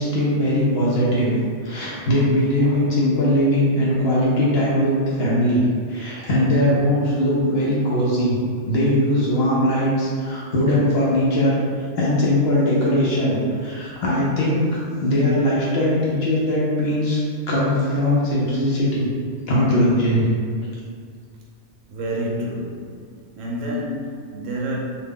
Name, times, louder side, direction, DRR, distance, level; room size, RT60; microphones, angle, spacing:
voice 1, 0.0-1.3 1.6-5.6 5.9-8.4 8.7-11.6 12.0-17.2 17.5-19.1 19.5-20.3, left 1 dB, 60° left, -6 dB, 0.7 m, -20 dB
voice 2, 2.6-3.0 17.7-17.8 21.9-23.0 23.4-24.8, equal, 70° right, -2 dB, 0.9 m, -29 dB
2.8 x 2.2 x 3.6 m, 2.1 s
omnidirectional pair, 1.4 m